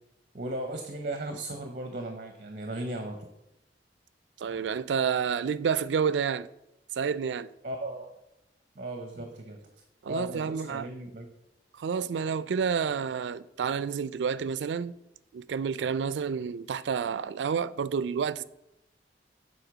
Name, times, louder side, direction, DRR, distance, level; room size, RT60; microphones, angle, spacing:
voice 1, 0.3-3.2 7.6-8.1 8.8-9.6 10.0-11.3, right 1 dB, 50° right, 0.9 m, -36 dB
voice 2, 4.4-6.5 7.0-7.5 10.0-10.9 11.7-14.9 15.3-18.4, right 6 dB, 85° right, 0.4 m, -29 dB
7.9 x 4.2 x 6.0 m
head